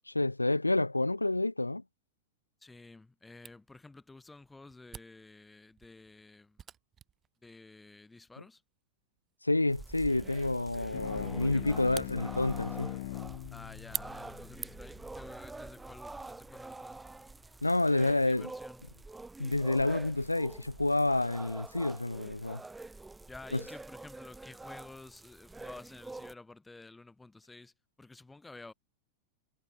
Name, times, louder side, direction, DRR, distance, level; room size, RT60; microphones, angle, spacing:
voice 1, 0.1-1.8 9.4-12.9 17.6-18.5 19.4-22.6 23.5-23.6, left 2 dB, 85° left, 0.8 m, -29 dB
voice 2, 2.6-6.6 7.4-8.6 11.4-12.1 13.5-17.1 18.0-18.8 23.3-28.7, left 3 dB, 10° left, 5.9 m, -52 dB
Camera, 3.4-15.0, right 9 dB, 25° right, 1.1 m, -49 dB
sound 1, 9.7-26.3, right 3 dB, 10° right, 2.2 m, -46 dB
sound 2, 10.9-15.8, left 19 dB, 50° left, 0.8 m, -42 dB
figure-of-eight pair, 90°, 0 cm